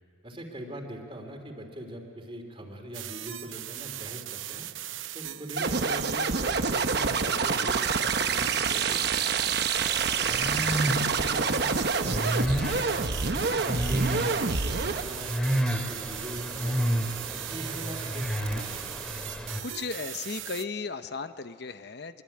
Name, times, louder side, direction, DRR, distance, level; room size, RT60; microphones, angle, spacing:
voice 1, 0.2-4.7 5.1-9.6 10.2-13.0 13.4-18.9, right 1 dB, 30° right, 3 dB, 3.2 m, -42 dB
sound 1, 2.9-20.6, right 13 dB, 80° right, 0.7 m, -39 dB
sound 2, 5.6-15.0, right 5 dB, 55° right, 1.0 m, -27 dB
sound 3, 9.7-19.6, equal, 5° left, 2.2 m, -31 dB
voice 2, 19.4-22.2, left 4 dB, 55° left, 10 dB, 0.8 m, -36 dB
25.5 x 23.0 x 8.7 m, 2.3 s
head